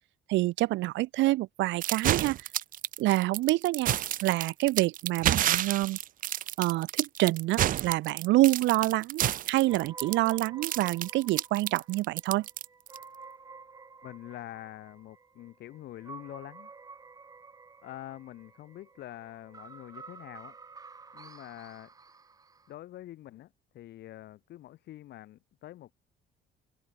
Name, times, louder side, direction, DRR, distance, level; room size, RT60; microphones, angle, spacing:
voice 1, 0.3-2.4 3.0-3.9 4.2-6.0 6.6-12.5, right 18 dB, 75° right, 0.8 m, -27 dB
sound 1, 1.8-13.0, right 12 dB, 45° right, 0.8 m, -30 dB
sound 2, 9.7-22.7, right 4 dB, 20° right, 3.1 m, -51 dB
voice 2, 14.0-16.7 17.8-20.5 21.1-21.9 22.7-25.9, left 14 dB, 65° left, 6.4 m, -45 dB
open air
cardioid pair, 165°, 19 cm